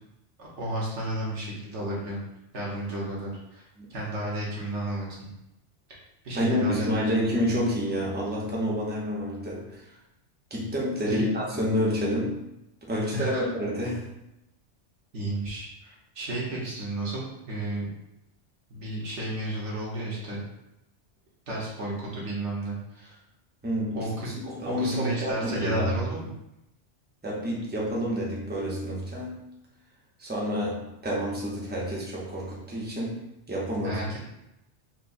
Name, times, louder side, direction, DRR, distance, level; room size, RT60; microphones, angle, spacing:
voice 1, 0.4-2.2 2.5-5.3 6.2-6.9 11.1-11.3 13.1-13.4 15.1-17.9 18.7-20.4 21.5-23.1 23.9-26.3 33.8-34.2, right 1 dB, 75° right, -5 dB, 1.3 m, -32 dB
voice 2, 6.3-9.8 10.5-12.4 12.9-14.1 23.6-24.1 24.5-26.0 27.2-29.4 30.2-33.2 33.5-34.0, equal, 10° right, -5 dB, 0.5 m, -28 dB
4.3 x 2.0 x 2.5 m, 0.88 s
omnidirectional pair, 1.2 m